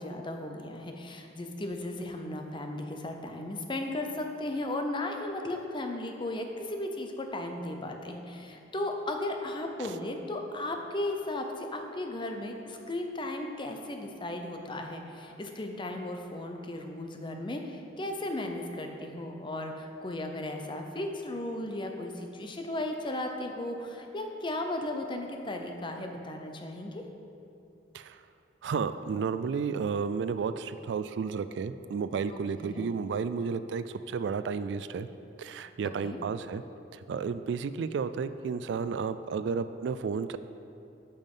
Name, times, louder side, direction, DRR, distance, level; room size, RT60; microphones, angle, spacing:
voice 1, 0.0-27.0 32.3-32.9 36.0-36.2, left 1 dB, 25° left, 4 dB, 0.7 m, -36 dB
voice 2, 28.6-35.1 35.4-36.6 37.1-40.4, right 5 dB, 70° right, 12 dB, 0.3 m, -32 dB
9.0 x 5.5 x 5.5 m, 2.7 s
head